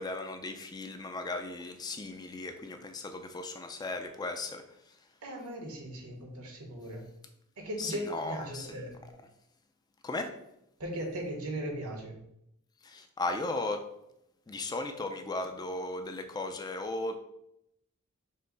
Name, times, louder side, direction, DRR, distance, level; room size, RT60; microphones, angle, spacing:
voice 1, 0.0-5.0 7.8-8.8 10.0-10.3 12.8-13.8 14.5-17.2, left 2 dB, 20° left, 6 dB, 0.3 m, -36 dB
voice 2, 5.2-7.0 7.6-8.9 10.8-12.2, right 1 dB, 75° right, 1 dB, 1.1 m, -38 dB
5.5 x 2.0 x 3.8 m, 0.79 s
head